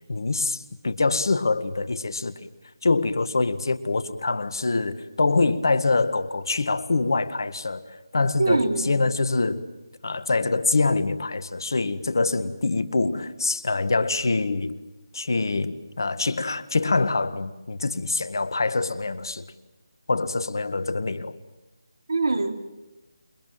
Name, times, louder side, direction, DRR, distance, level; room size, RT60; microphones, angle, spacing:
voice 1, 0.1-2.3 2.8-7.8 8.1-9.7 10.0-14.8 15.1-19.5 20.1-21.4, left 3 dB, 65° left, 1.7 m, -25 dB
voice 2, 8.4-8.9 22.1-22.6, right 3 dB, 65° right, 3.2 m, -23 dB
28.5 x 23.0 x 7.7 m
figure-of-eight pair, 155°, 2 cm